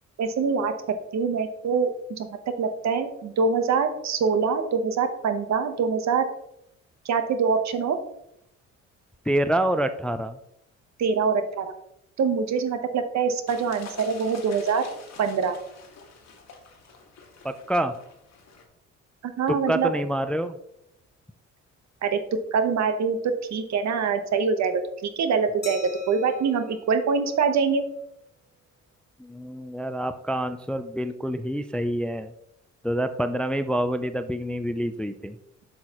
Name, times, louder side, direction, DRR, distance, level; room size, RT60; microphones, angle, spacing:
voice 1, 0.2-2.3 2.6-6.3 7.0-8.0 11.0-11.7 12.2-14.8 15.2-15.5 19.2-19.9 22.0-22.2 22.5-25.8 26.1-27.8, right 5 dB, 65° right, 9 dB, 1.0 m, -24 dB
voice 2, 9.3-10.4 17.4-17.9 19.5-20.6 29.2-32.3 32.8-35.4, right 1 dB, 5° left, 10 dB, 0.4 m, -27 dB
sound 1, 13.5-18.6, left 4 dB, 60° left, 1.7 m, -47 dB
Glass, 25.6-28.1, left 2 dB, 35° left, 1.7 m, -45 dB
7.8 x 6.5 x 3.0 m, 0.79 s
cardioid pair, 90°, 30 cm